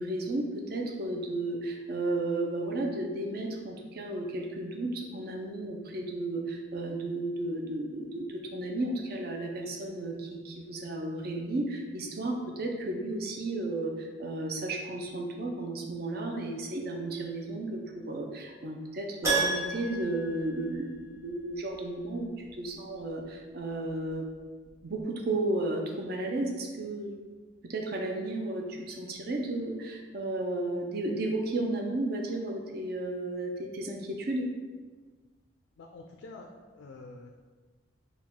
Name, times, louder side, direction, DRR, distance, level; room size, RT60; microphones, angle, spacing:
voice 1, 0.0-24.3 24.8-27.1 27.7-34.5, right 2 dB, 50° right, 1 dB, 0.5 m, -33 dB
Keyboard (musical), 19.2-21.3 21.5-21.6 24.4-24.5 24.7-24.8, right 3 dB, 15° right, 1.0 m, -31 dB
voice 2, 35.8-37.3, left 3 dB, 75° left, 2 dB, 0.4 m, -47 dB
4.7 x 2.3 x 3.6 m, 1.4 s
head